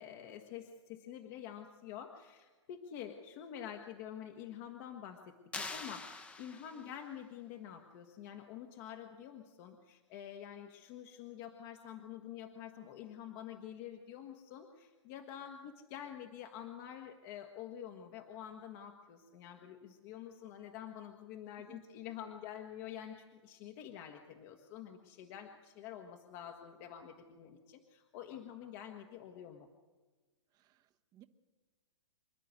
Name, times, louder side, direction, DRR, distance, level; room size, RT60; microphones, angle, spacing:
voice 1, 0.0-29.7, left 10 dB, 35° left, 4 dB, 1.5 m, -48 dB
sound 1, 5.5-7.0, left 3 dB, 10° left, 1.1 m, -44 dB
voice 2, 30.5-31.2, right 13 dB, 25° right, 8 dB, 1.2 m, -61 dB
27.0 x 11.0 x 9.5 m, 1.3 s
hypercardioid pair, 145°, 16 cm